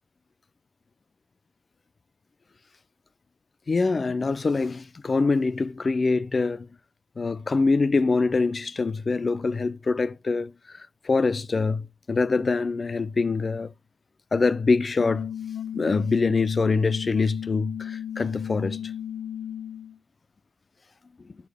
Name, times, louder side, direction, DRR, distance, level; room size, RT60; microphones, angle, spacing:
voice 1, 3.7-6.7 7.2-13.7 14.3-15.3 15.7-18.9, left 4 dB, 30° left, 0.4 m, -24 dB
sound 1, 15.0-20.0, left 9 dB, 80° left, 1.0 m, -34 dB
11.5 x 4.4 x 3.4 m
wide cardioid pair, 140°, 0 cm